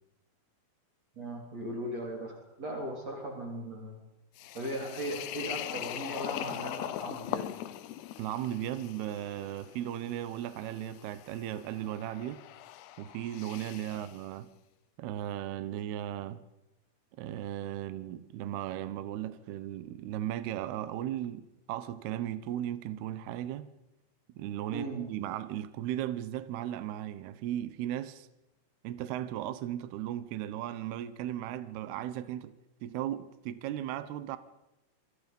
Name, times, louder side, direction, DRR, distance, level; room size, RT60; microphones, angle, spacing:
voice 1, 1.1-4.0 4.5-7.6 24.7-25.1, right 1 dB, 40° right, 4.5 m, -38 dB
sound 1, 4.4-14.2, left 13 dB, 75° left, 2.8 m, -41 dB
voice 2, 8.2-12.4 13.0-14.5 15.0-16.4 17.2-23.7 24.4-28.3 28.8-32.5 32.8-34.4, right 12 dB, 70° right, 2.8 m, -36 dB
28.0 x 25.5 x 5.4 m
omnidirectional pair, 5.2 m